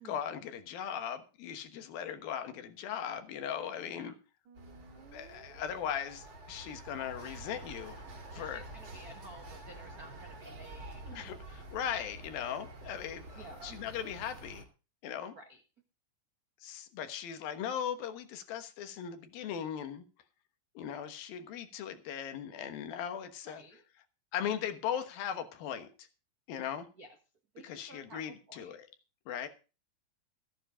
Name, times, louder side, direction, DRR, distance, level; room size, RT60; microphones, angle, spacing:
voice 1, 0.0-4.1 5.1-8.0 8.3-8.7 11.1-11.4 11.7-14.6 15.0-15.3 16.6-20.0 20.8-23.6 24.3-26.1 26.5-26.9 27.6-28.9 29.3-29.5, left 9 dB, 75° left, 9 dB, 3.1 m, -38 dB
voice 2, 3.8-4.2 8.3-11.3 13.3-13.8 15.3-15.6 23.5-23.8 26.9-27.2 27.5-28.8, right 2 dB, 70° right, 4 dB, 0.8 m, -53 dB
Musical instrument, 4.4-11.3, right 3 dB, 55° right, 3.0 m, -56 dB
sound 1, 4.5-14.6, right 2 dB, 35° right, 3.0 m, -49 dB
14.0 x 10.0 x 5.0 m, 0.32 s
omnidirectional pair, 4.3 m